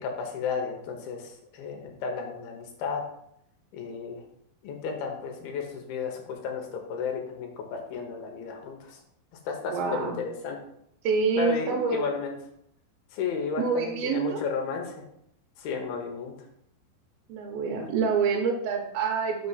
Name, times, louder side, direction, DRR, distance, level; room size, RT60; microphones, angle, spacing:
voice 1, 0.0-3.0 3.7-4.2 4.6-9.0 9.5-10.6 11.3-12.3 13.1-15.0 15.6-16.3 17.8-17.9, left 5 dB, 75° left, 2 dB, 2.5 m, -33 dB
voice 2, 9.7-10.2 11.0-12.1 13.6-14.4 17.3-19.5, right 5 dB, 80° right, 1 dB, 2.3 m, -27 dB
6.0 x 3.3 x 5.5 m, 0.74 s
omnidirectional pair, 4.5 m